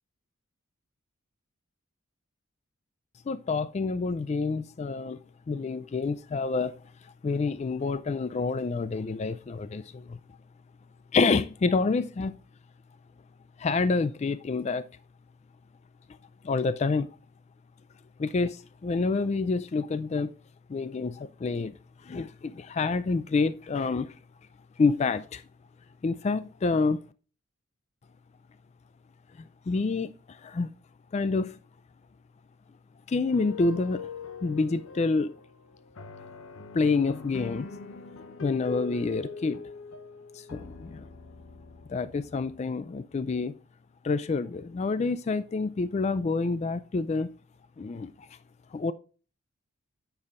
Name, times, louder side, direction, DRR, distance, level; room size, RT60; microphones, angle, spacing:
voice 1, 3.3-5.2 5.5-6.7 7.2-10.2 11.1-12.3 13.6-14.8 16.4-17.1 18.2-18.6 18.8-20.3 20.7-21.7 22.1-24.1 24.8-25.4 26.0-27.0 29.7-30.1 30.4-30.7 31.1-31.5 33.1-34.0 34.4-35.3 36.7-37.7 38.4-39.6 40.5-41.0 41.9-43.5 44.0-47.3 47.8-48.1 48.7-48.9, left 4 dB, 35° left, 0.3 m, -27 dB
sound 1, 33.3-42.6, left 4 dB, 85° left, 0.8 m, -42 dB
9.4 x 6.9 x 2.4 m
head